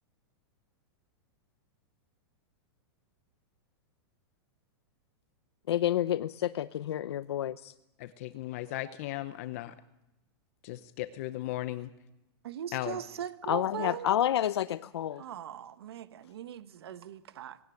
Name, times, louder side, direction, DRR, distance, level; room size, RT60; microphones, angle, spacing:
voice 1, 5.7-7.7 13.5-15.2, left 11 dB, 90° left, 12 dB, 0.7 m, -29 dB
voice 2, 8.0-9.7 10.6-11.9 12.7-13.0, left 15 dB, 35° left, 12 dB, 0.8 m, -36 dB
voice 3, 12.4-14.1 15.1-17.6, right 10 dB, 70° right, 12 dB, 1.4 m, -40 dB
19.5 x 17.5 x 9.2 m, 0.91 s
supercardioid pair, 175°, 13 cm